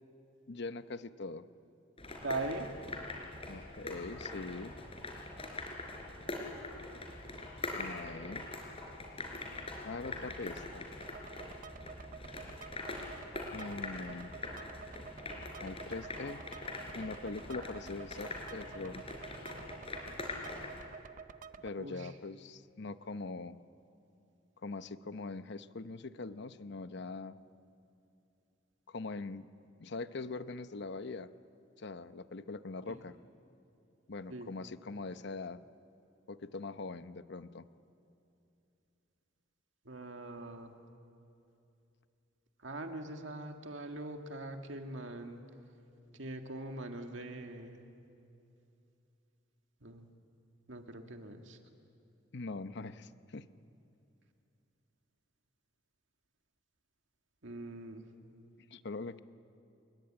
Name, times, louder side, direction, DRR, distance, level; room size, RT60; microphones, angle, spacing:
voice 1, 0.5-1.5 3.5-4.8 7.8-8.5 9.8-10.9 13.5-14.3 15.6-16.4 16.9-19.0 21.6-23.6 24.6-27.4 28.9-29.5 29.8-31.3 31.8-33.1 34.1-35.6 36.3-37.7 52.3-53.5 58.7-59.2, left 3 dB, 60° left, 12 dB, 0.8 m, -42 dB
sound 1, 2.0-20.8, left 2 dB, 30° left, 4.3 m, -43 dB
voice 2, 2.2-2.7 21.8-22.1 34.3-34.5 39.9-40.7 42.6-45.4 46.1-47.8 49.8-50.1 50.7-51.6 57.4-58.1, right 2 dB, 70° right, 4 dB, 2.1 m, -42 dB
sound 2, 11.0-21.7, right 6 dB, 45° right, 0.6 m, -50 dB
28.5 x 21.5 x 8.9 m, 2.7 s
head